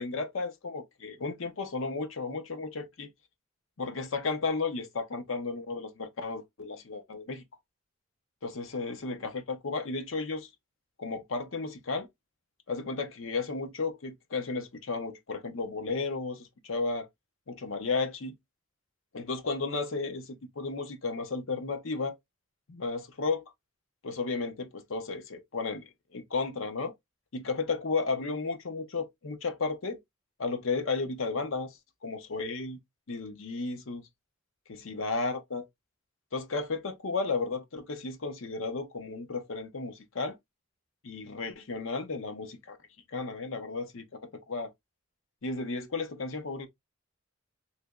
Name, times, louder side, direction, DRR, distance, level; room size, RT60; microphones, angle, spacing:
voice 1, 0.0-3.1 3.8-7.4 8.4-10.5 11.0-12.1 12.7-17.1 17.5-18.3 19.1-22.2 22.7-23.4 24.0-26.9 27.3-30.0 30.4-32.8 33.1-34.1 34.7-35.6 36.3-40.4 41.0-42.8 43.1-44.7 45.4-46.7, left 4 dB, 75° left, 0.7 m, -33 dB
3.3 x 2.9 x 2.3 m
head